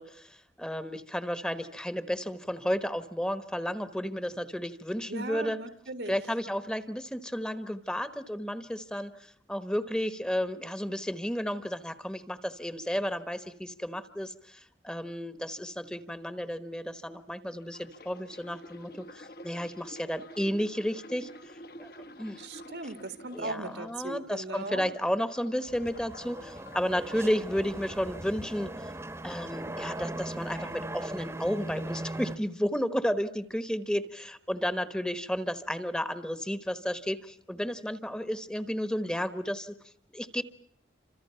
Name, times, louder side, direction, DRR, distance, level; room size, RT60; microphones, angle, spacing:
voice 1, 0.0-5.6 6.1-21.5 21.8-22.4 23.3-28.9 29.2-39.8 40.1-40.4, equal, 5° left, 11 dB, 1.1 m, -32 dB
voice 2, 5.1-6.2 22.4-24.9, right 2 dB, 75° right, 9 dB, 2.1 m, -38 dB
sound 1, 17.6-24.1 24.5-27.0 27.6-27.9, left 1 dB, 55° left, 1.2 m, -49 dB
sound 2, 25.7-32.4, right 1 dB, 15° right, 1.1 m, -39 dB
30.0 x 26.5 x 5.7 m, 0.67 s
head